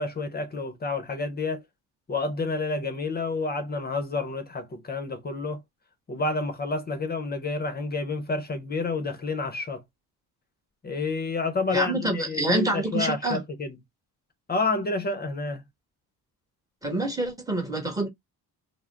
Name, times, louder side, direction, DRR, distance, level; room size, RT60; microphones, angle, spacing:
voice 1, 0.0-1.6 2.1-5.6 6.1-9.8 10.8-13.8 14.5-15.6, left 3 dB, 25° left, 0.7 m, -29 dB
voice 2, 11.7-13.4 16.8-18.1, right 1 dB, 10° right, 1.2 m, -27 dB
2.4 x 2.1 x 3.3 m
cardioid pair, 95°, 40 cm